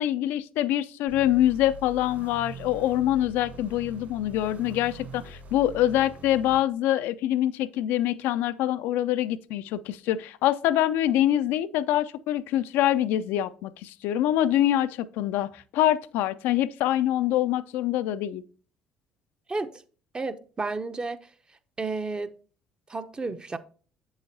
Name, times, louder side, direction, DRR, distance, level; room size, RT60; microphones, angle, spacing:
voice 1, 0.0-18.4, left 12 dB, 65° left, 0.3 m, -25 dB
sound 1, 1.1-6.6, right 2 dB, 50° right, 3.5 m, -43 dB
voice 2, 20.1-21.2 21.8-22.3 22.9-23.6, right 3 dB, 25° right, 0.7 m, -31 dB
7.8 x 7.5 x 2.6 m
hypercardioid pair, 55°, 4 cm